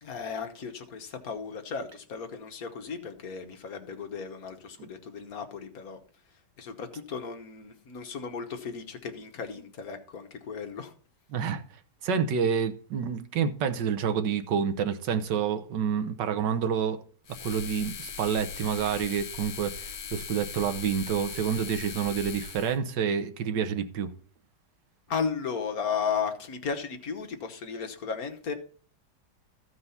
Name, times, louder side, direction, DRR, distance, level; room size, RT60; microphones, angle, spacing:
voice 1, 0.0-6.0 6.6-10.9 25.1-28.5, left 6 dB, 60° left, 1.6 m, -35 dB
voice 2, 11.3-11.6 12.0-17.0 17.4-24.1, right 7 dB, 85° right, 1.6 m, -28 dB
sound 1, 17.2-22.8, left 7 dB, 80° left, 1.6 m, -40 dB
13.5 x 4.7 x 5.6 m
omnidirectional pair, 1.9 m